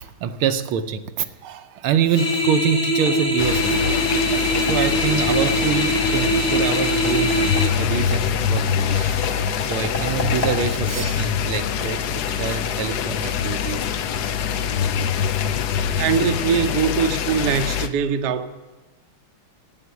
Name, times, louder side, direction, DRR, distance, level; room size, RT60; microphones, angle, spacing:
voice 1, 0.0-4.0 4.6-13.9, right 7 dB, 80° right, 1.6 m, -26 dB
sound 1, 1.7-13.5, left 1 dB, 50° left, 2.1 m, -37 dB
sound 2, 2.1-7.7, equal, 35° left, 1.7 m, -22 dB
sound 3, 3.4-17.9, left 8 dB, 70° left, 1.0 m, -24 dB
voice 2, 16.0-18.5, right 7 dB, 65° right, 1.1 m, -22 dB
11.0 x 9.3 x 8.2 m
omnidirectional pair, 2.3 m